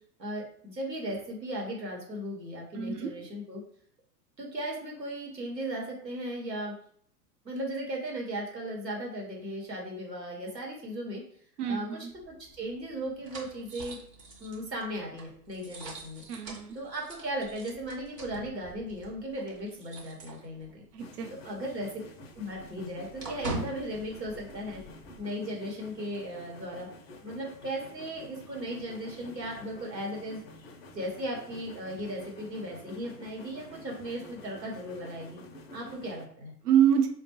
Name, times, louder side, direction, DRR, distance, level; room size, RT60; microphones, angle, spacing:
voice 1, 0.2-3.6 4.4-6.7 7.4-11.2 11.7-14.0 14.4-16.2 16.7-20.8 21.3-21.9 22.3-24.8 25.2-26.9 27.2-30.4 30.9-35.4 35.7-36.6, equal, 90° right, -2 dB, 1.1 m, -37 dB
voice 2, 2.7-3.1 11.6-12.1 16.3-16.8 20.9-21.3 36.6-37.1, right 9 dB, 65° right, 4 dB, 0.6 m, -26 dB
sound 1, 12.1-21.0 21.3-21.4 21.7-25.2, right 2 dB, 20° right, 0.4 m, -44 dB
sound 2, 21.0-36.3, left 1 dB, 40° left, 0.4 m, -49 dB
4.6 x 2.2 x 2.8 m, 0.62 s
figure-of-eight pair, 100°, 49 cm